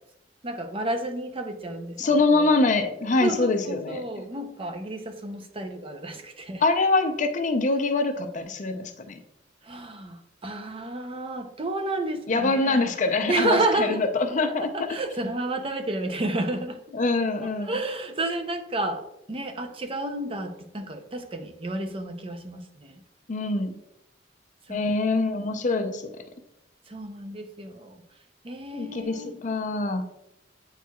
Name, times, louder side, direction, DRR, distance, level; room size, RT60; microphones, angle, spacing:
voice 1, 0.4-2.0 2.3-2.5 3.2-6.6 9.6-12.9 13.3-14.0 14.6-16.8 17.4-19.0 19.3-23.0 24.7-24.9 26.9-28.0 28.4-29.3, right 2 dB, 30° right, 7 dB, 0.6 m, -31 dB
voice 2, 2.0-4.0 6.6-9.2 12.3-14.7 16.9-17.8 23.3-23.8 24.7-26.1 28.7-30.0, left 3 dB, 45° left, 7 dB, 0.5 m, -24 dB
9.1 x 4.5 x 2.3 m, 0.85 s
head